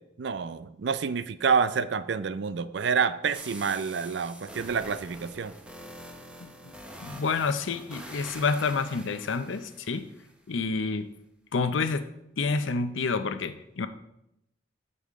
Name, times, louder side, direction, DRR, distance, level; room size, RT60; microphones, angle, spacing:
voice 1, 0.2-5.5, right 6 dB, 65° right, 14 dB, 0.4 m, -28 dB
sound 1, 3.3-10.3, equal, 5° right, 1.0 m, -45 dB
voice 2, 7.0-10.1 10.5-11.1 11.5-12.1 12.4-13.9, left 4 dB, 85° left, 10 dB, 0.6 m, -28 dB
14.0 x 5.5 x 3.6 m, 0.83 s
head